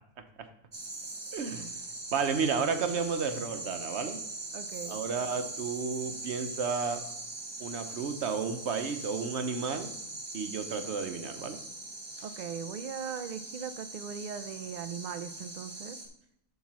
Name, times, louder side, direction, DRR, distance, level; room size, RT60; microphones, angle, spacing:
sound 1, 0.7-16.1, right 2 dB, 25° right, 0.8 m, -41 dB
voice 1, 1.3-1.7 2.1-4.2 4.9-7.0 7.6-9.9 10.3-11.6, right 5 dB, 60° right, 7 dB, 1.0 m, -32 dB
voice 2, 4.5-5.0 12.2-16.0, right 7 dB, 80° right, 11 dB, 0.4 m, -39 dB
7.2 x 3.7 x 6.0 m, 0.76 s
omnidirectional pair, 1.3 m